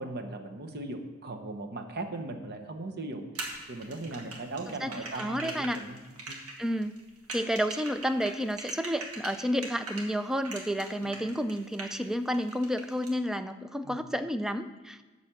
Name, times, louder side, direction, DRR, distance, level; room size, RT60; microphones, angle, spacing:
voice 1, 0.0-3.3 3.7-6.0 6.3-6.4 11.0-11.2 13.8-14.0, right 2 dB, 50° right, 5 dB, 1.0 m, -38 dB
sound 1, 3.4-10.1 10.4-12.0 12.3-13.1, right 3 dB, 85° right, 1.7 m, -41 dB
voice 2, 5.2-5.8 6.6-6.9 7.3-15.0, equal, ahead, 10 dB, 0.3 m, -31 dB
11.0 x 4.2 x 7.5 m, 1.3 s
head